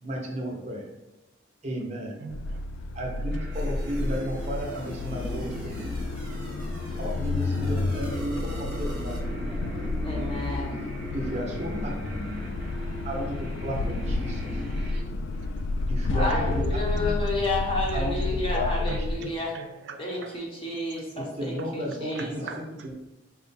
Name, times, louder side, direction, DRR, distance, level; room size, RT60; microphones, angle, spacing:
voice 1, 0.0-0.8 1.6-2.2 3.0-5.8 7.0-9.2 11.1-12.2 13.0-14.5 15.9-16.4 16.9-17.1 17.9-18.9 21.2-22.4 22.8-22.9, equal, 35° right, -1 dB, 0.7 m, -33 dB
voice 2, 2.2-2.6 11.4-11.7 15.4-15.5 18.8-20.3 22.1-22.9, right 5 dB, 65° right, 5 dB, 0.3 m, -41 dB
sound 1, 2.3-19.2, left 2 dB, 80° left, 0.3 m, -30 dB
sound 2, 3.3-15.0, right 1 dB, 5° right, 1.0 m, -39 dB
voice 3, 10.0-10.8 16.1-19.5 20.0-22.5, left 2 dB, 30° left, -3 dB, 0.9 m, -31 dB
4.5 x 2.2 x 4.1 m, 0.95 s
head